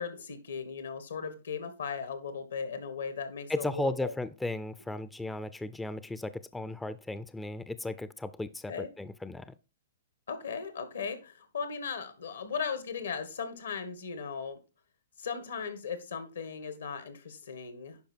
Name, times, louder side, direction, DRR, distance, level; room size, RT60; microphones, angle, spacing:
voice 1, 0.0-4.1 8.7-8.9 10.3-14.6 15.2-18.1, left 6 dB, 80° left, 1.9 m, -37 dB
voice 2, 3.5-9.5, left 2 dB, 5° left, 0.4 m, -35 dB
10.5 x 5.0 x 4.4 m
hypercardioid pair, 125°, 0 cm